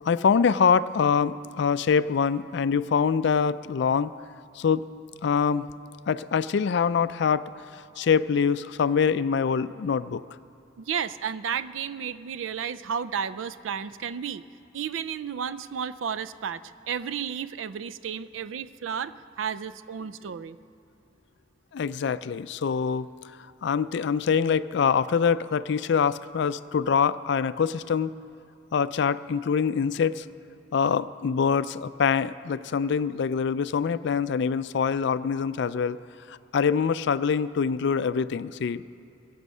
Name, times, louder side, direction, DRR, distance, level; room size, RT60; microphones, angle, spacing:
voice 1, 0.0-4.1 4.6-4.9 5.2-5.7 6.1-7.5 8.0-10.2 21.7-23.1 23.6-28.1 28.7-30.3 30.7-36.0 36.3-38.8, left 6 dB, 60° left, 15 dB, 0.4 m, -24 dB
voice 2, 10.8-14.4 14.7-16.6 16.9-20.6, right 7 dB, 80° right, 15 dB, 0.4 m, -32 dB
21.5 x 8.1 x 5.5 m, 2.9 s
head